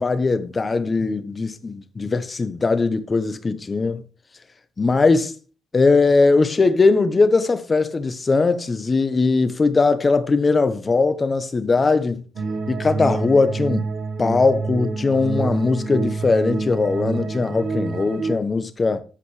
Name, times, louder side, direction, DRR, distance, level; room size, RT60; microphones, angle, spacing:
voice 1, 0.0-4.0 4.8-5.3 5.7-12.2 12.7-13.9 14.2-19.0, left 3 dB, 30° left, 1.1 m, -20 dB
sound 1, 12.3-18.4, right 4 dB, 65° right, 1.8 m, -27 dB
14.0 x 5.2 x 3.3 m
cardioid pair, 90°, 0 cm